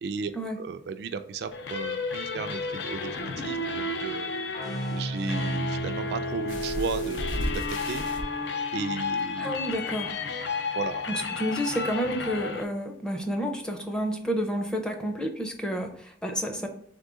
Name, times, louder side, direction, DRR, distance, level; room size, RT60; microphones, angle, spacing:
voice 1, 0.0-4.3 4.9-7.6 7.9-8.0 8.7-9.5 10.7-11.1, right 5 dB, 60° right, 9 dB, 0.3 m, -35 dB
sound 1, 1.5-12.6, left 3 dB, 70° left, 0.5 m, -32 dB
sound 2, 4.5-8.0, right 1 dB, 50° left, 1.0 m, -35 dB
sound 3, 6.5-8.2 9.2-9.3 9.7-9.8, equal, 90° left, 1.0 m, -33 dB
voice 2, 9.4-10.2 11.1-16.7, equal, 5° left, 3 dB, 0.5 m, -30 dB
3.6 x 3.5 x 3.7 m, 0.67 s
head